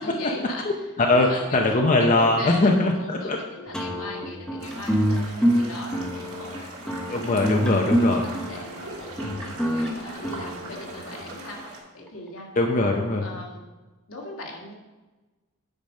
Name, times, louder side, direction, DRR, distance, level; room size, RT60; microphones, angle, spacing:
voice 1, 0.0-0.8 1.1-1.6 2.0-7.3 7.6-12.5 13.2-13.7 14.1-14.7, left 2 dB, 75° left, -2 dB, 2.0 m, -39 dB
voice 2, 0.6-3.4 7.1-8.2 9.2-9.4 12.5-13.4, left 2 dB, 35° left, 2 dB, 0.6 m, -22 dB
sound 1, 3.7-11.2, equal, 5° left, 0.9 m, -26 dB
sound 2, 4.6-11.8, right 2 dB, 85° right, 2.6 m, -41 dB
8.8 x 5.1 x 5.3 m, 1.2 s
head